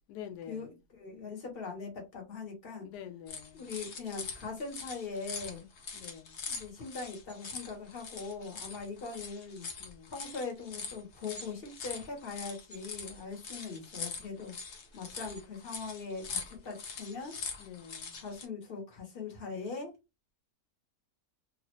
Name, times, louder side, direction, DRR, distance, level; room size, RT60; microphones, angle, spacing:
voice 1, 0.1-0.8 2.8-3.7 5.9-6.4 9.8-10.2 17.6-18.2, left 9 dB, 90° left, 1.2 m, -47 dB
voice 2, 1.0-2.9 3.5-5.7 6.5-9.7 10.1-14.5 14.9-17.3 18.2-19.9, left 4 dB, 40° left, 1.3 m, -41 dB
sound 1, 3.3-18.5, left 5 dB, 55° left, 0.9 m, -43 dB
3.0 x 2.5 x 3.0 m
omnidirectional pair, 1.7 m